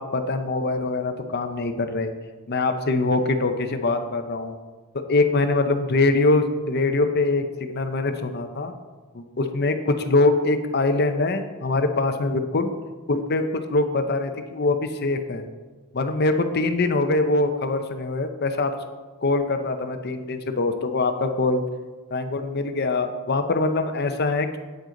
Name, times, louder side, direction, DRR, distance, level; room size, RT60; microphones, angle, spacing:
voice 1, 0.0-2.1 2.5-4.5 5.1-8.7 9.1-12.7 13.1-15.5 15.9-18.7 19.2-21.6 22.1-24.6, left 2 dB, 50° left, 8 dB, 0.7 m, -23 dB
9.2 x 7.9 x 3.9 m, 1.3 s
head